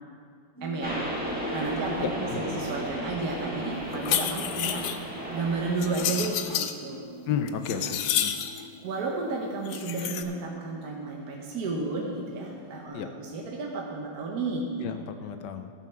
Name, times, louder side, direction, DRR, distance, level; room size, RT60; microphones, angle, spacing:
sound 1, 0.6-12.9, left 1 dB, 15° left, 0.8 m, -46 dB
voice 1, 0.6-1.0 1.5-4.9 5.3-7.1 7.7-8.0 8.8-14.8, right 3 dB, 60° right, -1 dB, 1.4 m, -32 dB
sound 2, 0.8-6.2, equal, 5° right, 1.6 m, -34 dB
voice 2, 2.0-2.6 7.3-8.3 12.9-13.1 14.8-15.7, left 7 dB, 70° left, 8 dB, 1.2 m, -33 dB
sound 3, 3.9-5.0 5.8-6.7 7.3-8.6 9.7-10.2, left 10 dB, 90° left, 1.4 m, -29 dB
13.0 x 5.6 x 6.2 m, 2.2 s
omnidirectional pair, 2.0 m